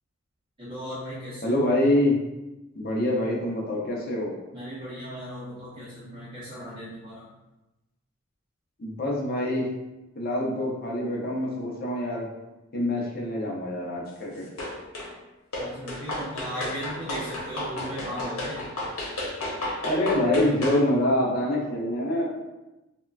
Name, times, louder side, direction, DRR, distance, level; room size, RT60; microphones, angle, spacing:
voice 1, 0.6-1.7 4.5-7.2 15.6-18.6, equal, 20° right, -10 dB, 0.6 m, -37 dB
voice 2, 1.4-2.2 2.7-4.3 8.8-9.7 10.2-12.3 12.7-14.5 19.8-22.3, left 1 dB, 45° left, -2 dB, 0.6 m, -25 dB
sound 1, 14.6-15.1 15.5-20.8, left 1 dB, 80° left, 0.9 m, -32 dB
3.6 x 2.2 x 2.3 m, 1.0 s
head